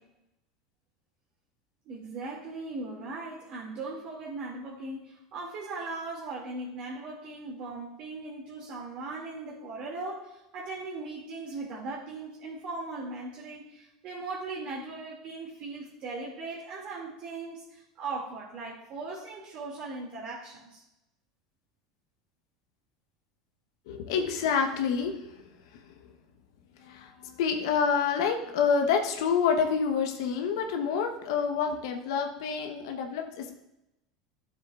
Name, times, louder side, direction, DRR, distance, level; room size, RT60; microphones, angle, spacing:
voice 1, 1.9-20.8, right 3 dB, 50° right, -4 dB, 2.4 m, -39 dB
voice 2, 23.9-25.3 26.8-33.6, left 6 dB, 70° left, 4 dB, 1.1 m, -28 dB
12.0 x 7.4 x 2.5 m, 0.90 s
hypercardioid pair, 85°, 3 cm